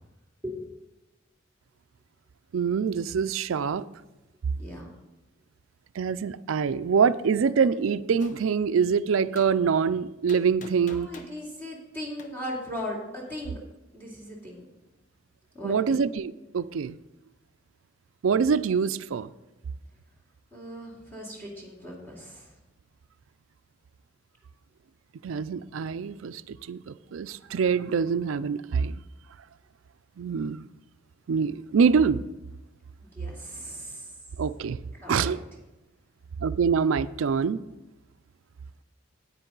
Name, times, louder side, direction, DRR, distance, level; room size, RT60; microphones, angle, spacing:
voice 1, 2.5-3.9 5.9-11.1 15.6-17.0 18.2-19.3 25.2-29.0 30.2-30.7 31.3-32.2 34.4-34.8 35.1-35.4 36.4-37.6, right 6 dB, 90° right, 0.4 m, -25 dB
voice 2, 4.5-4.9 10.9-13.6 13.9-14.7 15.5-15.9 20.5-22.5 33.0-34.1 35.0-35.3, left 1 dB, 10° left, 2.4 m, -38 dB
Gunshot gunfire, 8.2-8.4 9.4-9.5 10.3-11.4 12.2-12.3, left 3 dB, 40° left, 0.8 m, -46 dB
9.9 x 8.9 x 3.9 m
head